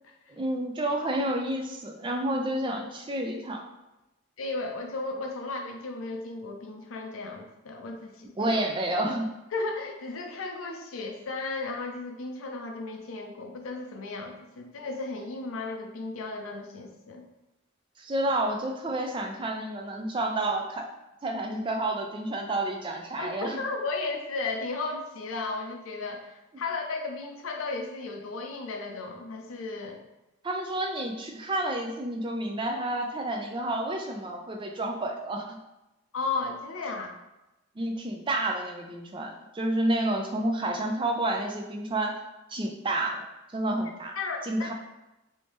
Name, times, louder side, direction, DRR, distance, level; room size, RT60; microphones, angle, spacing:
voice 1, 0.3-3.6 8.4-9.3 18.0-20.9 21.2-23.6 30.4-35.6 37.8-42.2 42.5-43.3 43.5-44.1 44.4-44.7, right 1 dB, 25° right, 3 dB, 0.3 m, -30 dB
voice 2, 4.4-8.3 9.5-17.2 23.2-30.0 36.1-37.1 44.2-44.7, left 3 dB, 75° left, 3 dB, 0.5 m, -34 dB
3.5 x 2.7 x 3.0 m, 0.97 s
head